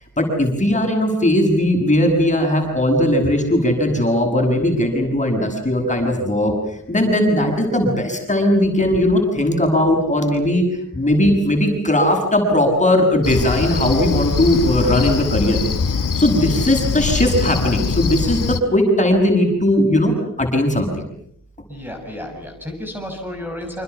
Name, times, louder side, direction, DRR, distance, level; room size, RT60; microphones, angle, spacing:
voice 1, 0.2-10.6 10.9-15.6 16.2-20.1 20.4-21.0, left 1 dB, 20° left, 3 dB, 7.9 m, -18 dB
Cricket, 13.2-18.6, left 5 dB, 75° left, 1.8 m, -22 dB
voice 2, 21.7-23.8, left 1 dB, 5° right, 2 dB, 6.9 m, -31 dB
29.0 x 27.0 x 7.1 m, 0.67 s
wide cardioid pair, 130°, 32 cm